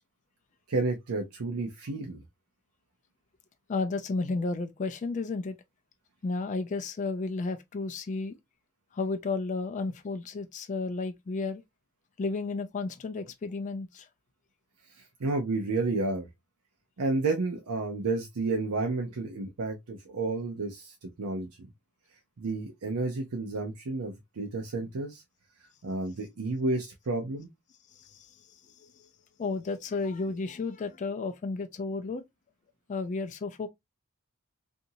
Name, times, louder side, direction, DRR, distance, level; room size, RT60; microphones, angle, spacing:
voice 1, 0.7-2.2 15.2-16.3 17.0-21.7 22.4-25.2 25.8-27.5, right 3 dB, 75° right, 0.6 m, -31 dB
voice 2, 3.7-5.6 6.2-8.4 8.9-11.6 12.2-14.1 28.0-28.3 28.8-29.1 29.4-32.2 32.9-33.7, left 3 dB, 35° left, 0.3 m, -32 dB
2.8 x 2.6 x 2.6 m
head